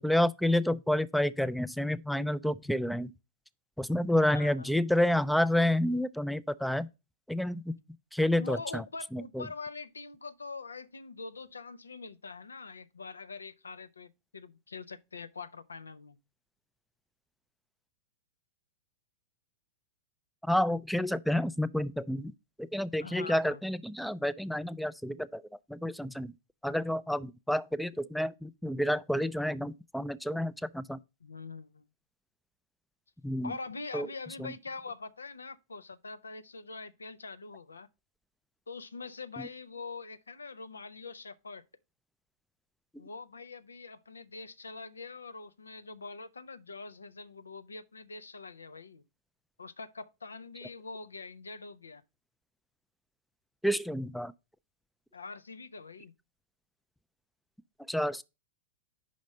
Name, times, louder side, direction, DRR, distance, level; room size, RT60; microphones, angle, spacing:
voice 1, 0.0-3.1 3.8-6.9 7.3-7.7 8.1-8.8 9.1-9.5 20.4-22.3 22.6-25.4 25.7-26.3 26.6-31.0 33.2-33.5 33.9-34.1 34.4-34.5 39.4-39.5 53.6-54.3 57.9-58.2, left 1 dB, ahead, 0.3 m, -29 dB
voice 2, 4.2-4.7 8.4-16.2 23.0-23.6 31.2-31.9 33.4-37.9 38.7-41.6 43.0-49.0 49.6-52.0 55.1-56.1, left 4 dB, 90° left, 0.5 m, -44 dB
5.1 x 5.0 x 5.4 m
hypercardioid pair, 105°, 0 cm